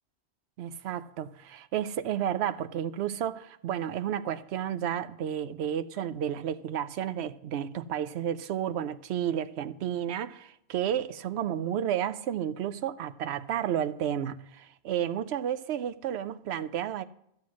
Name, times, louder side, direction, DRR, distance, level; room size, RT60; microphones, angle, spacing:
voice 1, 0.6-17.0, right 10 dB, 85° right, 0.9 m, -32 dB
13.0 x 7.6 x 6.3 m
omnidirectional pair, 1.1 m